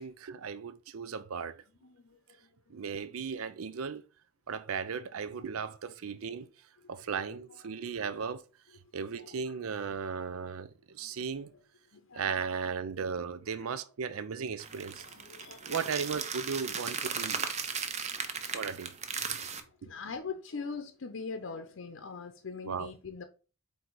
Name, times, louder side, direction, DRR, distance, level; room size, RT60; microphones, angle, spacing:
voice 1, 0.0-1.6 2.7-4.0 4.5-6.5 6.9-8.4 8.9-11.5 12.1-15.0 15.6-17.5 18.5-18.9 22.6-22.9, right 6 dB, 85° right, 0.5 m, -36 dB
voice 2, 1.8-2.8 5.3-5.5 7.3-7.4 7.6-8.1 9.1-9.6 11.0-11.6 11.9-12.4 13.5-13.7 15.0-15.8 19.8-23.2, left 5 dB, 60° left, 0.6 m, -43 dB
sound 1, 14.6-19.6, right 6 dB, 35° right, 0.7 m, -36 dB
7.9 x 2.8 x 4.6 m
head